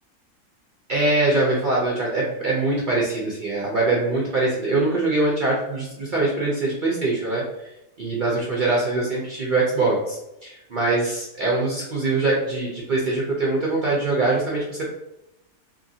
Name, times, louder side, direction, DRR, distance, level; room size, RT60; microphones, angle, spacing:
voice 1, 0.9-7.7 8.0-14.9, right 2 dB, 65° right, -4 dB, 0.5 m, -23 dB
2.9 x 2.5 x 2.7 m, 0.88 s
omnidirectional pair, 1.5 m